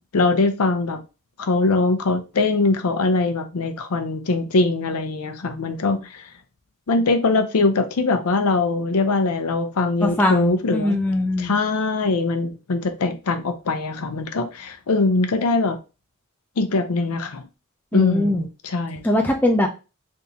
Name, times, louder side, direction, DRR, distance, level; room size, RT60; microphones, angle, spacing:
voice 1, 0.1-1.0 1.4-6.2 6.9-11.0 11.4-15.8 16.6-17.4 17.9-19.0, left 3 dB, 90° left, 0.6 m, -22 dB
voice 2, 10.0-11.5 17.9-18.4 19.0-19.7, left 1 dB, 10° left, 0.5 m, -21 dB
3.5 x 2.7 x 2.9 m
head